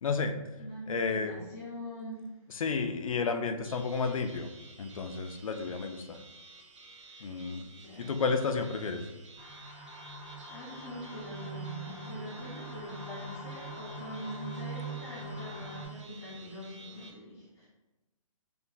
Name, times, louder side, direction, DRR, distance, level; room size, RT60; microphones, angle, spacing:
voice 1, 0.0-0.3 0.9-1.4 2.5-4.5 4.8-6.2 7.2-7.6 8.0-9.0, left 4 dB, 70° left, 6 dB, 0.5 m, -31 dB
voice 2, 0.6-2.3 5.8-6.0 7.1-7.3 7.8-8.0 10.2-17.7, equal, 25° left, -11 dB, 0.9 m, -44 dB
sound 1, 3.6-17.1, right 3 dB, 55° right, 0.7 m, -53 dB
sound 2, 9.4-15.9, right 2 dB, 15° right, 1.0 m, -42 dB
3.3 x 2.1 x 3.9 m, 1.1 s
hypercardioid pair, 170°, 18 cm